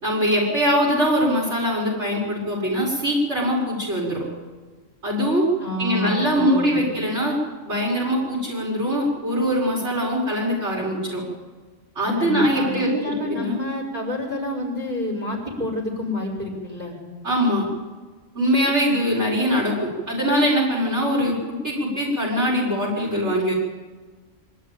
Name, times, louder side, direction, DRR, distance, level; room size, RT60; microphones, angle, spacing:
voice 1, 0.0-4.2 5.0-5.4 5.8-7.4 7.6-11.2 12.0-13.6 17.2-17.7 18.4-23.5, equal, 60° right, -4 dB, 5.3 m, -22 dB
voice 2, 5.6-6.8 12.2-17.0, left 1 dB, 35° right, -1 dB, 5.8 m, -28 dB
24.5 x 12.5 x 9.0 m, 1.4 s
omnidirectional pair, 1.3 m